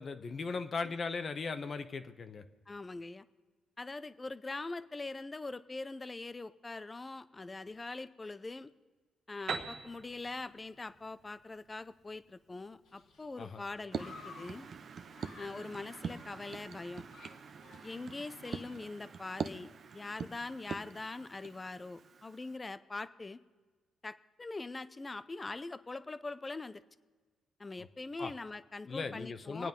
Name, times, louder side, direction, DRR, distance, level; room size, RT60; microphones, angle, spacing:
voice 1, 0.0-2.4 13.4-13.6 28.2-28.3 28.8-29.7, left 4 dB, 45° left, 9 dB, 1.0 m, -38 dB
voice 2, 2.7-3.3 3.8-8.7 9.3-14.7 15.4-17.0 17.8-23.4 24.0-26.8 27.6-29.7, left 3 dB, 20° left, 14 dB, 0.7 m, -43 dB
Piano, 9.5-13.1, right 5 dB, 70° right, 1.4 m, -43 dB
Human group actions, 12.8-19.4, left 5 dB, 75° left, 1.7 m, -56 dB
sound 1, 13.9-22.6, right 6 dB, 50° right, 0.7 m, -44 dB
24.5 x 9.2 x 5.3 m, 1.4 s
cardioid pair, 90°, 0 cm